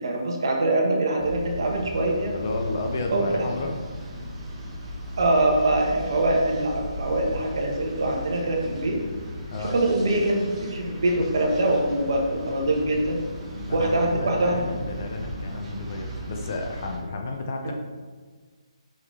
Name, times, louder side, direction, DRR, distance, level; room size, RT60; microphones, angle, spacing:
voice 1, 0.0-2.3 3.1-3.5 5.2-9.0 9.6-13.2 13.7-14.6, right 2 dB, 45° right, 0 dB, 1.2 m, -23 dB
sound 1, 1.2-17.0, left 1 dB, 10° right, 0.8 m, -36 dB
voice 2, 2.3-3.7 9.5-9.8 13.7-17.7, left 2 dB, 25° left, 2 dB, 0.4 m, -32 dB
5.8 x 5.6 x 3.2 m, 1.5 s
hypercardioid pair, 180°, 3 cm